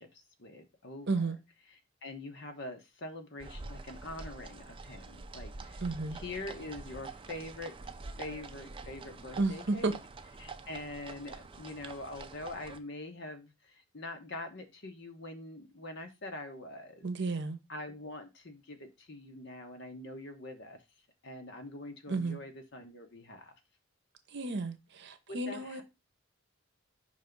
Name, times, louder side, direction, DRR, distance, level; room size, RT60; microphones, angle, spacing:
voice 1, 0.0-1.3 2.0-5.8 6.1-7.7 8.2-10.0 10.4-17.0 17.7-20.8 21.2-23.5 25.3-25.8, left 2 dB, 60° left, 1.2 m, -44 dB
voice 2, 1.1-1.4 5.8-6.2 9.4-9.9 17.0-17.6 22.1-22.4 24.3-25.8, right 3 dB, 55° right, 0.8 m, -32 dB
sound 1, 3.4-12.8, right 3 dB, 25° right, 0.5 m, -46 dB
5.5 x 3.4 x 5.2 m
head